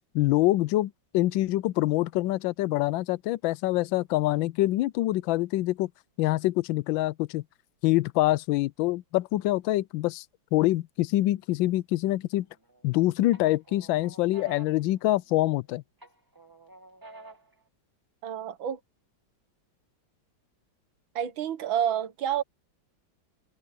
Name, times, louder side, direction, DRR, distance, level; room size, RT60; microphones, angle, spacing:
voice 1, 0.1-5.9 6.2-7.4 7.8-10.2 10.5-12.5 12.8-15.8, left 16 dB, 80° left, 1.3 m, -25 dB
sound 1, 12.3-12.9 13.3-15.6 16.0-17.6, right 2 dB, 10° right, 2.0 m, -50 dB
voice 2, 18.2-18.8 21.2-22.4, right 9 dB, 90° right, 1.9 m, -29 dB
omnidirectional pair, 2.1 m